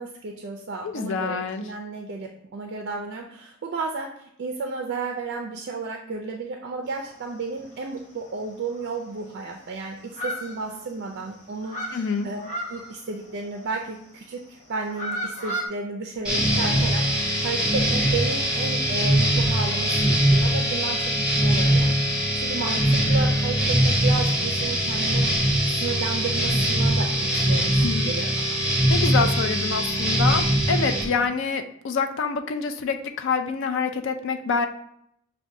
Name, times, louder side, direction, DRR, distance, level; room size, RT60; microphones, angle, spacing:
voice 1, 0.0-12.4 12.7-25.3 25.8-28.6 31.0-31.3, right 3 dB, 50° right, 2 dB, 0.4 m, -33 dB
voice 2, 0.8-1.6 11.9-12.3 27.8-28.1 28.9-34.7, left 5 dB, 60° left, 7 dB, 0.4 m, -26 dB
sound 1, 6.9-7.5 7.9-8.0 8.4-8.5 8.7-9.7 10.0-11.1 11.4-13.9 14.6-15.7, equal, 35° left, 0.9 m, -34 dB
sound 2, 16.2-31.0, right 1 dB, 5° right, 1.1 m, -22 dB
5.9 x 2.2 x 2.6 m, 0.72 s
head